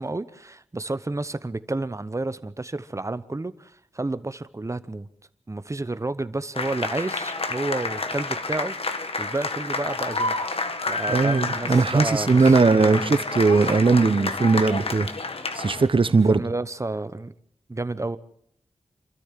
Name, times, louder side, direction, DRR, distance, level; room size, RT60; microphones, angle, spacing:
voice 1, 0.0-5.1 5.5-8.9 9.2-10.6 10.9-13.0 16.3-17.3 17.7-18.2, right 2 dB, 25° right, 0.9 m, -31 dB
sound 1, 6.5-15.9, left 3 dB, 55° left, 1.7 m, -29 dB
voice 2, 11.1-15.1 15.5-16.4, right 4 dB, 50° right, 1.1 m, -19 dB
27.5 x 13.5 x 7.5 m
wide cardioid pair, 105°, 12 cm